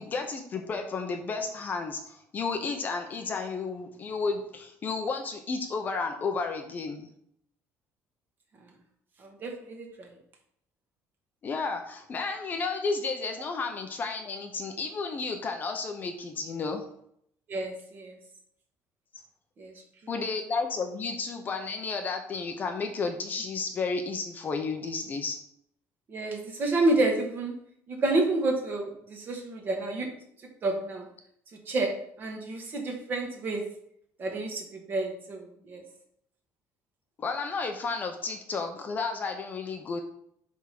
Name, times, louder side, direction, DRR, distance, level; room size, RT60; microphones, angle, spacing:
voice 1, 0.0-7.1 11.4-16.8 20.1-25.4 37.2-40.0, left 4 dB, 30° left, 5 dB, 0.7 m, -32 dB
voice 2, 9.2-10.1 17.5-18.1 19.6-19.7 20.0-20.1 26.1-27.5 27.9-30.1 30.6-31.1 31.7-31.9 32.2-33.6 34.2-35.8, right 2 dB, 30° right, 2 dB, 1.6 m, -29 dB
8.3 x 3.7 x 5.9 m, 0.70 s
cardioid pair, 170°, 6 cm